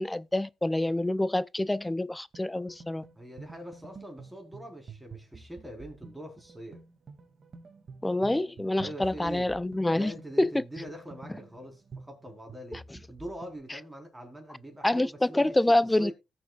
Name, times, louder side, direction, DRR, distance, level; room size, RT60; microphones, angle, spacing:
voice 1, 0.0-3.1 8.0-10.1 10.4-10.6 12.7-12.8 14.8-16.1, left 1 dB, 10° left, 0.4 m, -26 dB
sound 1, 2.3-13.6, right 4 dB, 45° right, 2.2 m, -49 dB
voice 2, 3.1-6.8 8.8-9.5 9.9-12.8 13.1-15.6 16.0-16.1, equal, 10° right, 4.1 m, -43 dB
17.5 x 6.9 x 2.4 m
cardioid pair, 90°, 0 cm